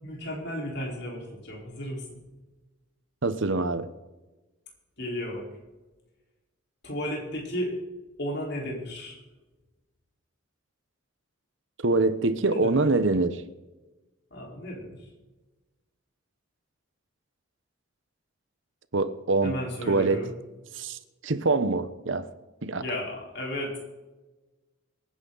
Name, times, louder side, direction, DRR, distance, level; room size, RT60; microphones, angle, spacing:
voice 1, 0.0-2.2 5.0-5.4 6.8-7.7 8.2-9.2 12.5-12.9 14.3-15.0 19.4-20.3 22.8-23.8, equal, 55° left, 4.4 m, -34 dB
voice 2, 3.2-3.9 11.8-13.4 18.9-19.5 19.9-20.3 20.8-21.0 21.2-22.2 22.6-22.8, right 3 dB, 65° right, 0.9 m, -24 dB
24.5 x 9.8 x 4.0 m
head